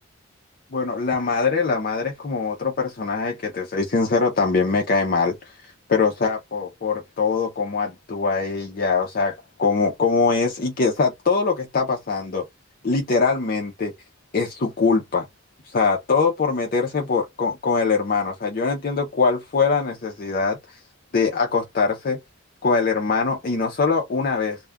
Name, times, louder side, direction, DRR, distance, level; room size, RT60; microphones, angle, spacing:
voice 1, 0.7-12.5 12.8-13.9 14.3-15.3 15.6-20.8 21.1-22.2 22.6-24.6, left 4 dB, 45° left, 0.5 m, -22 dB
2.3 x 2.1 x 3.2 m
head